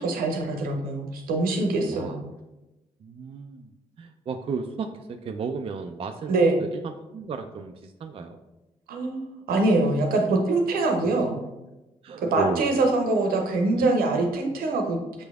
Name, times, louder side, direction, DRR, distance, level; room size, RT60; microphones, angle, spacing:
voice 1, 0.0-2.2 6.3-6.6 8.9-11.4 12.2-15.2, right 2 dB, 75° right, 2 dB, 0.7 m, -24 dB
voice 2, 1.9-2.2 3.0-3.7 4.0-6.3 6.6-8.4 11.0-11.3 12.0-12.7 13.8-13.9, right 4 dB, 40° right, 6 dB, 0.3 m, -34 dB
5.8 x 3.2 x 2.3 m, 1.0 s
hypercardioid pair, 45°, 15 cm